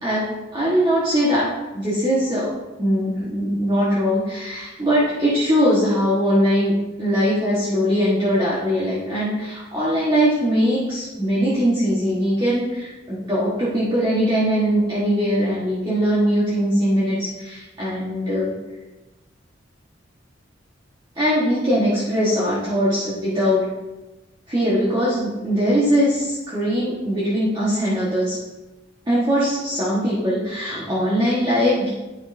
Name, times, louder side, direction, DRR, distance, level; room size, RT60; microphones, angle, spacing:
voice 1, 0.0-1.5 1.7-2.5 2.8-18.5 21.1-23.6 24.5-28.4 29.1-31.9, equal, 25° right, -9 dB, 1.5 m, -21 dB
9.8 x 5.9 x 2.7 m, 1.1 s
head